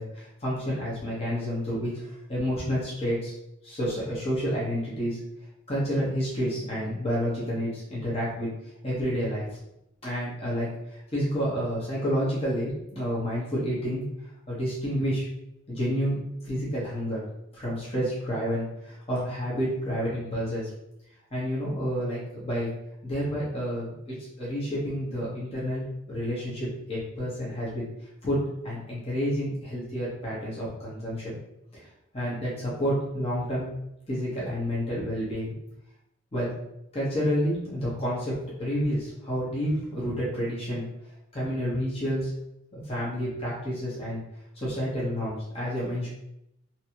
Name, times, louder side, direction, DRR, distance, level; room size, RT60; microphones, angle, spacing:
voice 1, 0.0-3.3 3.6-5.2 5.7-8.5 8.8-9.4 10.0-14.0 14.5-15.3 15.7-16.2 16.4-17.2 17.5-20.7 21.3-22.7 23.0-27.8 28.2-28.4 28.6-31.4 31.7-31.8 32.1-33.7 34.1-35.5 36.3-36.5 36.9-40.8 41.3-42.3 42.7-44.2 44.5-46.1, equal, 30° left, -7 dB, 1.2 m, -29 dB
3.1 x 2.9 x 2.9 m, 0.82 s
head